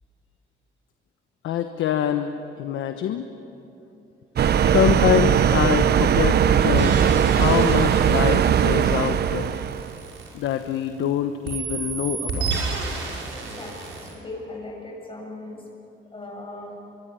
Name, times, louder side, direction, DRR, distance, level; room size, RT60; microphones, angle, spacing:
voice 1, 1.4-3.3 4.7-9.6 10.3-12.6, left 9 dB, 80° left, 8 dB, 1.2 m, -25 dB
sound 1, 4.4-9.9, right 8 dB, 55° right, 0.9 m, -19 dB
sound 2, 6.7-11.0 11.4-14.1, right 4 dB, 75° right, 6.1 m, -31 dB
voice 2, 13.3-15.7 16.1-16.7, left 2 dB, 25° left, 0 dB, 6.8 m, -38 dB
24.5 x 23.5 x 9.7 m, 2.9 s
cardioid pair, 90°, 20 cm